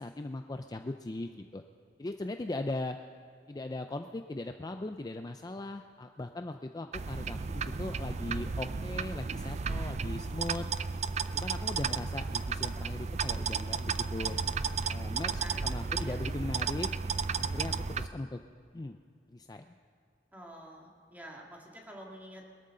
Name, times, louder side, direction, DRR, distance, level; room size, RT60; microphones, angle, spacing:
voice 1, 0.0-1.6 2.0-3.0 3.5-10.7 11.3-14.4 14.9-16.9 17.4-18.4 18.7-19.0 19.3-19.7, left 2 dB, 20° left, 7 dB, 0.4 m, -39 dB
sound 1, 6.9-18.1, right 5 dB, 40° right, 0.4 m, -33 dB
voice 2, 15.3-16.2 20.3-22.6, equal, 10° right, -1 dB, 2.3 m, -48 dB
22.0 x 13.0 x 3.9 m, 2.3 s
head